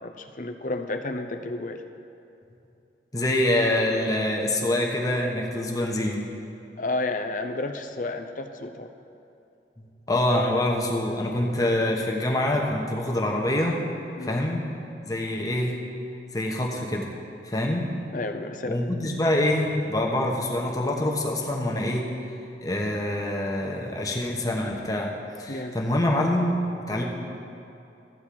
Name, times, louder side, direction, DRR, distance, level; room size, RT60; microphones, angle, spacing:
voice 1, 0.0-1.8 6.8-8.9 14.2-14.4 18.1-18.9 25.5-25.8, left 2 dB, 45° left, 7 dB, 0.6 m, -31 dB
voice 2, 3.1-6.3 10.1-13.8 14.2-14.6 15.0-15.8 16.3-17.1 17.4-17.9 18.7-22.0 22.6-25.1 25.4-26.6 26.9-27.0, left 1 dB, 20° left, -1 dB, 1.1 m, -25 dB
13.5 x 4.5 x 8.5 m, 2.8 s
head